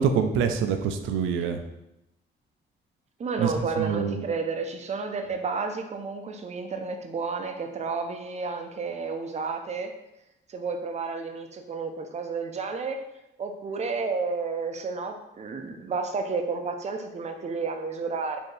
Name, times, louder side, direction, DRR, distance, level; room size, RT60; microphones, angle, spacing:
voice 1, 0.0-1.6 3.4-4.3, right 6 dB, 85° right, 7 dB, 0.5 m, -26 dB
voice 2, 3.2-9.9 10.5-13.0 13.4-18.4, right 4 dB, 35° right, 5 dB, 0.5 m, -31 dB
4.3 x 2.8 x 3.2 m, 0.88 s
cardioid pair, 90°, 20 cm